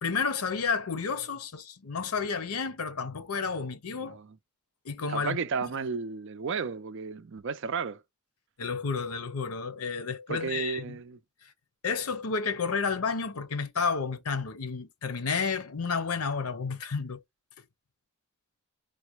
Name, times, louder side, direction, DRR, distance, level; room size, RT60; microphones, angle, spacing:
voice 1, 0.0-4.2 4.8-5.4 8.6-11.0 11.4-11.5 11.8-17.2, left 5 dB, 85° left, 0.7 m, -31 dB
voice 2, 4.0-4.4 5.1-8.0 10.3-11.2, right 5 dB, 55° right, 0.4 m, -33 dB
3.9 x 2.1 x 3.0 m
head